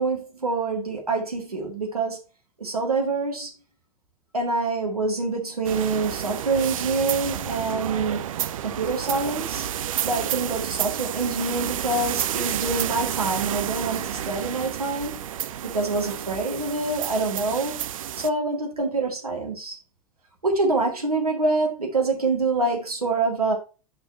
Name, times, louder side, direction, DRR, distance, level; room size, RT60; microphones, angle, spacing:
voice 1, 0.0-2.2 2.6-3.5 4.3-8.2 8.6-9.7 10.0-15.2 15.6-17.8 18.2-19.8 20.4-23.5, right 3 dB, 85° right, 2.0 m, -26 dB
sound 1, 5.6-18.3, right 11 dB, 65° right, 0.6 m, -30 dB
6.2 x 5.5 x 4.4 m
figure-of-eight pair, 85°, 19 cm